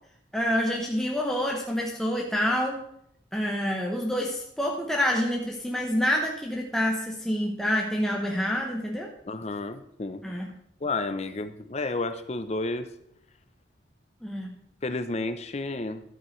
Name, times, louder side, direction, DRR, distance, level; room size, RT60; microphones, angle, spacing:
voice 1, 0.3-2.8 3.3-9.1 10.2-10.5 14.2-14.5, equal, ahead, -1 dB, 0.9 m, -27 dB
voice 2, 9.2-10.2 10.8-12.9 14.8-16.0, left 2 dB, 35° left, 10 dB, 0.6 m, -31 dB
11.5 x 8.2 x 3.2 m, 0.72 s
head